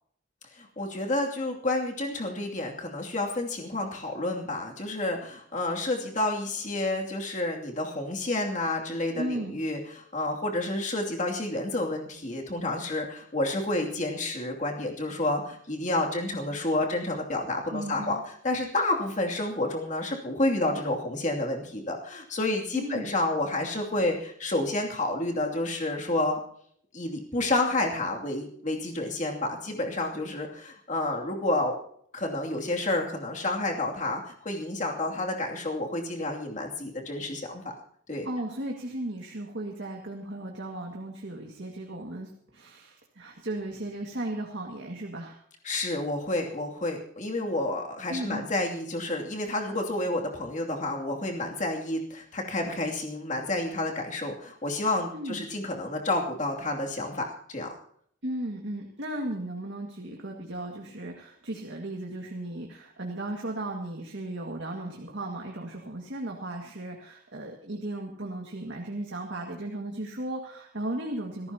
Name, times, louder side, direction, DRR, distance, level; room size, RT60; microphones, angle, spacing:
voice 1, 0.6-18.2 18.4-26.4 26.9-31.8 32.1-37.7 38.1-38.3 45.6-57.7, left 2 dB, 40° left, 0 dB, 2.7 m, -30 dB
voice 2, 9.2-9.6 17.7-18.2 22.7-23.1 38.2-45.4 48.1-48.5 55.1-55.5 58.2-71.5, right 1 dB, 75° right, 0 dB, 2.0 m, -36 dB
26.5 x 13.5 x 2.9 m, 0.63 s
head